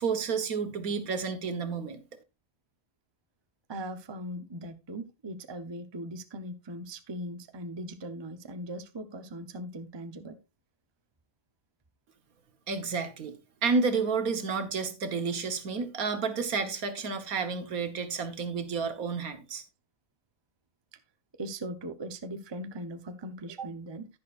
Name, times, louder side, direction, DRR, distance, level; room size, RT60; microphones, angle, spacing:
voice 1, 0.0-2.0 12.7-13.4 13.6-19.6, right 5 dB, 70° right, 1.7 m, -30 dB
voice 2, 3.7-10.4 20.9-21.0 21.4-24.1, right 1 dB, 25° right, 0.6 m, -39 dB
10.5 x 10.5 x 2.5 m
omnidirectional pair, 1.6 m